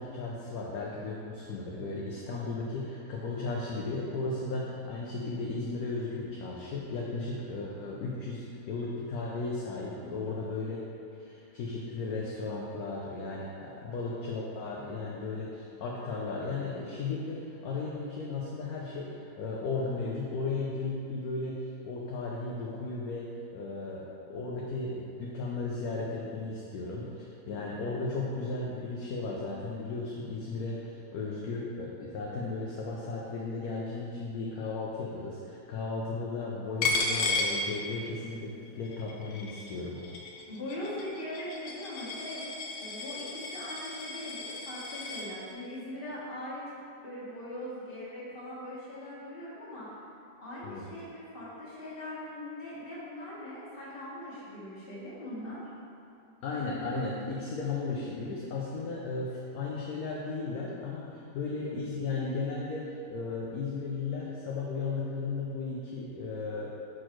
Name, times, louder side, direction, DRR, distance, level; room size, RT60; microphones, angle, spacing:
voice 1, 0.0-10.8 11.2-40.0 50.6-50.8 56.4-66.9, left 3 dB, 65° left, -4 dB, 1.1 m, -35 dB
Coin (dropping), 36.8-38.3 38.7-45.3, left 3 dB, 90° left, 1.4 m, -34 dB
voice 2, 40.5-42.4 42.7-46.6 47.0-50.0 50.4-55.6, left 1 dB, 35° left, -8 dB, 1.8 m, -41 dB
6.1 x 4.4 x 4.5 m, 2.6 s
omnidirectional pair, 1.8 m